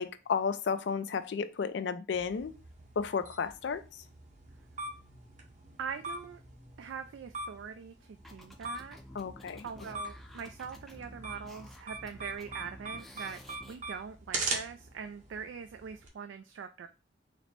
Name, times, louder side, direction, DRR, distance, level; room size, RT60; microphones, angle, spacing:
voice 1, 0.0-2.5 3.0-4.0 9.1-9.7, left 6 dB, 65° left, 0.4 m, -33 dB
sound 1, 2.1-16.1, right 3 dB, 40° right, 0.8 m, -42 dB
voice 2, 5.8-6.4 6.8-9.0 9.6-13.4 13.6-16.9, right 6 dB, 75° right, 0.3 m, -42 dB
sound 2, 8.2-13.8, equal, ahead, 0.5 m, -51 dB
4.1 x 2.1 x 4.4 m
head